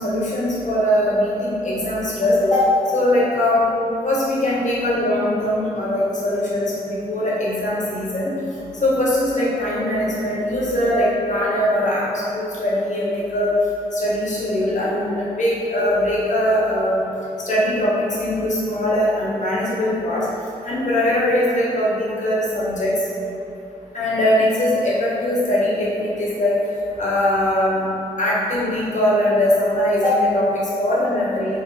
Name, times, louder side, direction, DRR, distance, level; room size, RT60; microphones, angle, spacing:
voice 1, 0.0-3.7 4.0-8.3 8.7-13.5 13.9-17.0 17.4-20.3 20.6-22.9 23.9-26.5 27.0-27.8 28.2-31.6, left 1 dB, 50° left, -7 dB, 1.0 m, -21 dB
3.3 x 2.1 x 3.2 m, 2.7 s
supercardioid pair, 40°, 16 cm